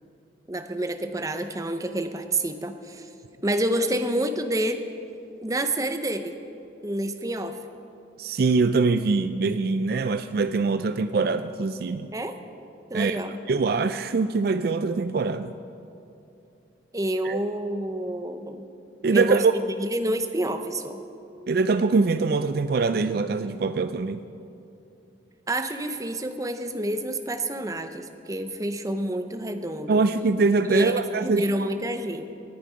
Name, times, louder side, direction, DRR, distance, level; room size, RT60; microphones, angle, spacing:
voice 1, 0.5-3.1 3.4-4.8 5.4-6.4 6.8-7.6 12.1-12.3 12.9-13.4 16.9-18.6 19.1-19.4 19.8-21.0 25.5-30.0 30.7-32.3, right 1 dB, 20° right, 8 dB, 0.7 m, -28 dB
voice 2, 8.2-12.1 12.9-13.2 13.5-15.5 17.2-17.4 19.0-19.5 21.5-24.2 29.9-31.4, right 4 dB, 55° right, 11 dB, 0.4 m, -23 dB
19.0 x 10.5 x 5.1 m, 2.8 s
head